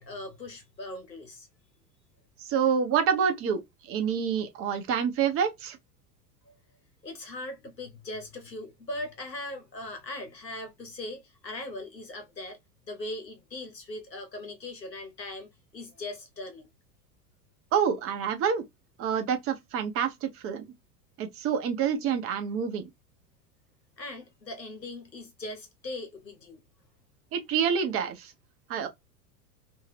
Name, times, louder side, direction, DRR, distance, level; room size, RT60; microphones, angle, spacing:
voice 1, 0.0-1.5 7.0-12.6 12.9-16.7 24.0-26.6, left 1 dB, 90° left, 1.1 m, -40 dB
voice 2, 2.4-3.6 3.9-5.8 17.7-18.6 19.0-20.6 21.2-22.8 27.3-28.3 28.7-28.9, right 7 dB, 30° right, 0.7 m, -27 dB
2.7 x 2.3 x 3.2 m
figure-of-eight pair, 90°, 49 cm